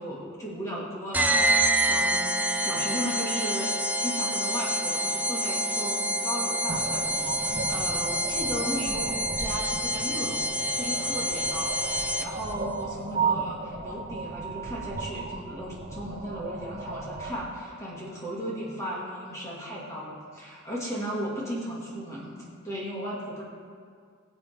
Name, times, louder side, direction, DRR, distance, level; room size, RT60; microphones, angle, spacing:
voice 1, 0.0-10.5 10.7-23.4, equal, 15° left, -6 dB, 2.0 m, -36 dB
sound 1, 1.1-12.5, right 1 dB, 10° right, 0.5 m, -27 dB
sound 2, 6.7-17.4, right 4 dB, 40° right, 0.9 m, -35 dB
19.5 x 7.8 x 3.5 m, 2.1 s
head